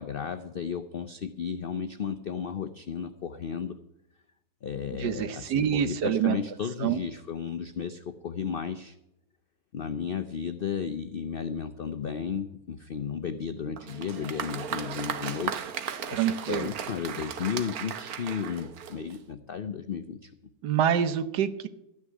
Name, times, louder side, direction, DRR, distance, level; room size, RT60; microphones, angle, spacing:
voice 1, 0.0-3.8 4.6-9.0 9.7-15.7 16.1-20.3, left 7 dB, 70° left, 9 dB, 0.5 m, -34 dB
voice 2, 5.0-6.4 6.8-7.0 16.1-16.7 20.6-21.7, right 9 dB, 85° right, 12 dB, 1.5 m, -26 dB
Applause, 13.8-19.3, right 8 dB, 65° right, 1.3 m, -36 dB
13.0 x 6.4 x 9.4 m, 0.86 s
omnidirectional pair, 1.7 m